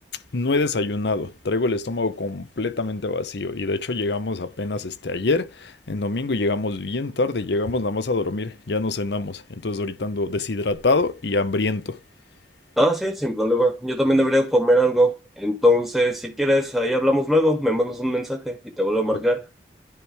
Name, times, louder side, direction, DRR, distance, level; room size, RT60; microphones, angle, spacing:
voice 1, 0.3-12.0, left 3 dB, 75° left, 0.8 m, -25 dB
voice 2, 12.8-19.4, equal, ahead, 0.7 m, -21 dB
10.0 x 4.8 x 3.4 m
head